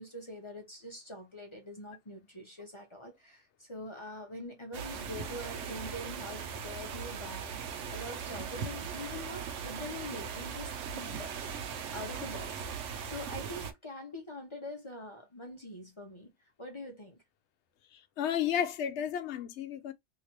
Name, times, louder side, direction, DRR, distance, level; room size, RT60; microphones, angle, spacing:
voice 1, 0.0-11.3 11.9-12.6 13.0-16.3 16.6-17.2, left 1 dB, 30° left, 0.8 m, -44 dB
sound 1, 4.7-13.7, right 6 dB, 80° right, 1.0 m, -39 dB
voice 2, 18.2-19.9, left 9 dB, 70° left, 0.9 m, -32 dB
3.2 x 2.9 x 2.8 m
omnidirectional pair, 1.2 m